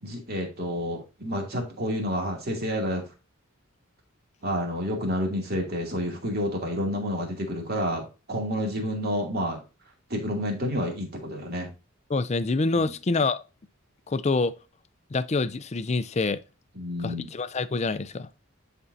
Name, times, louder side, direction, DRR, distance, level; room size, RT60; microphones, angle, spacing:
voice 1, 0.0-3.0 4.4-9.6 10.1-11.7 12.8-12.9 16.7-17.3, equal, 45° right, 2.6 m, -29 dB
voice 2, 12.1-13.4 14.1-14.5 15.1-16.4 17.0-18.3, left 3 dB, 30° left, 0.5 m, -26 dB
11.0 x 4.5 x 2.7 m
head